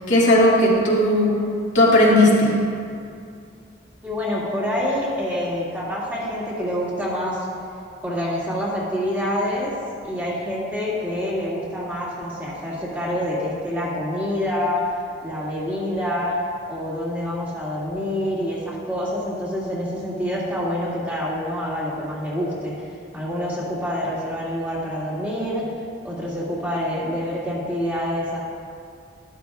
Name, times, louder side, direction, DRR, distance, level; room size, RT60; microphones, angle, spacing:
voice 1, 0.1-1.3 1.7-2.5, left 1 dB, 75° left, -6 dB, 2.1 m, -16 dB
voice 2, 4.0-7.5 8.0-9.7 10.0-14.8 15.2-16.4 16.7-22.9 23.1-25.6 26.0-28.4, equal, 10° right, -8 dB, 2.0 m, -26 dB
12.5 x 11.5 x 2.3 m, 2.3 s
head